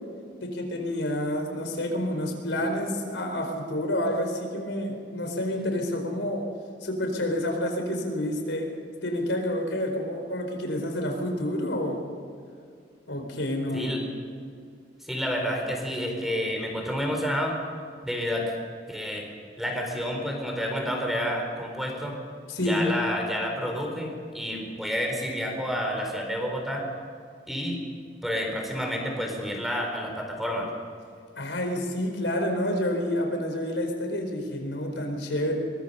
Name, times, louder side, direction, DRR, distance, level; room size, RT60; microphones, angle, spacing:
voice 1, 0.4-6.4 6.8-8.7 9.0-12.0 13.1-13.9 22.5-22.9 31.4-35.6, left 1 dB, 90° left, 3 dB, 4.6 m, -29 dB
voice 2, 15.0-17.6 18.0-18.5 18.9-19.3 19.6-22.2 22.6-26.9 27.5-27.8 28.2-30.7, equal, ahead, 1 dB, 4.1 m, -29 dB
23.0 x 22.5 x 5.6 m, 2.3 s
head